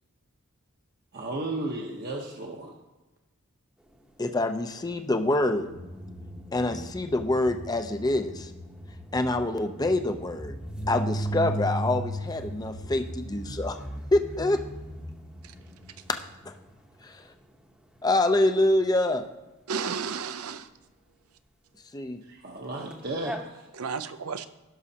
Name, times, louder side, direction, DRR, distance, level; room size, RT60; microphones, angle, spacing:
voice 1, 1.1-2.7 22.2-23.7, right 2 dB, 45° right, 0 dB, 0.9 m, -34 dB
voice 2, 4.2-5.7 6.5-8.5 9.1-10.5 10.9-13.8 14.1-14.6 16.5-16.6 17.0-17.2 18.0-19.2 21.9-22.2, left 2 dB, 15° left, 7 dB, 0.5 m, -26 dB
sound 1, 5.1-16.7 22.9-23.0 23.2-23.4, right 1 dB, 5° right, 0.9 m, -37 dB
voice 3, 19.7-20.7 23.7-24.5, right 6 dB, 70° right, 12 dB, 0.6 m, -33 dB
16.0 x 6.2 x 2.8 m, 1.1 s
head